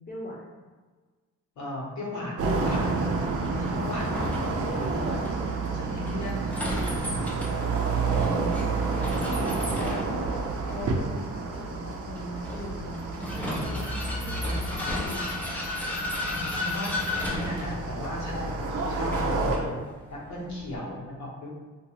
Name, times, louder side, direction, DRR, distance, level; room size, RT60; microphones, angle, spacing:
voice 1, 0.1-0.6 2.1-2.8 4.0-4.3 8.0-8.7 9.1-14.4 14.7-15.3, left 1 dB, 30° left, -3 dB, 0.8 m, -40 dB
voice 2, 1.5-3.0 3.6-5.2 5.6-7.1 9.0-9.4 13.5-13.9 16.2-19.8 20.1-21.7, left 1 dB, 75° left, -5 dB, 1.2 m, -37 dB
sound 1, 2.4-19.6, right 4 dB, 50° right, 0.6 m, -30 dB
Vehicle, 2.7-20.8, left 1 dB, 5° left, 0.6 m, -34 dB
2.9 x 2.5 x 2.9 m, 1.4 s
cardioid pair, 90°, 30 cm